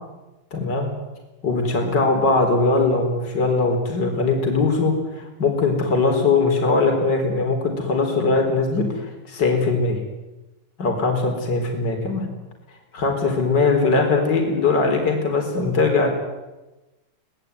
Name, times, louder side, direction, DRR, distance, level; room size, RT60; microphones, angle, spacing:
voice 1, 0.5-0.9 1.4-10.0 10.8-12.3 12.9-16.1, left 3 dB, 35° left, 3 dB, 4.7 m, -20 dB
23.5 x 19.0 x 9.4 m, 1.1 s
omnidirectional pair, 3.4 m